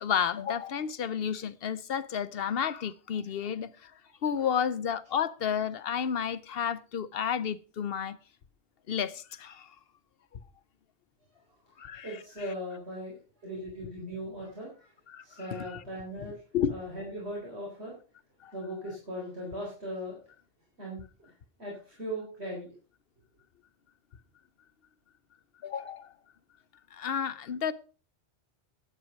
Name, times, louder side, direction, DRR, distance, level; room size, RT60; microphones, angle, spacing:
voice 1, 0.0-3.7 4.2-8.2 8.9-9.7 11.8-12.2 15.1-15.8 16.5-16.8 18.4-18.5 25.6-26.1 27.0-27.7, left 8 dB, 60° left, 0.9 m, -31 dB
voice 2, 12.0-13.1 13.4-14.9 15.2-16.3 16.7-17.9 18.5-20.2 20.8-21.3 21.6-22.7, equal, 70° right, 4.4 m, -38 dB
11.0 x 8.8 x 5.2 m
omnidirectional pair, 1.2 m